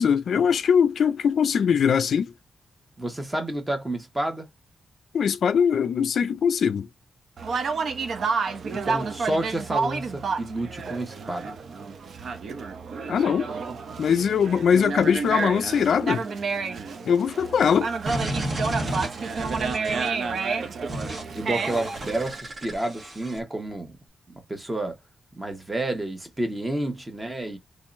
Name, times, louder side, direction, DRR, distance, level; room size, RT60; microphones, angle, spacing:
voice 1, 0.0-2.3 5.1-6.9 13.1-13.5 14.0-16.3 17.1-17.9, left 7 dB, 70° left, 0.3 m, -21 dB
voice 2, 3.0-4.5 8.7-11.6 21.3-23.9 24.3-25.0 25.4-27.6, right 1 dB, 15° right, 1.0 m, -30 dB
Conversation, 7.4-22.4, right 4 dB, 65° right, 0.6 m, -30 dB
sound 1, 18.1-20.2 20.9-21.2 21.6-23.4, right 1 dB, 40° right, 1.3 m, -32 dB
3.6 x 3.0 x 2.5 m
wide cardioid pair, 145°, 0 cm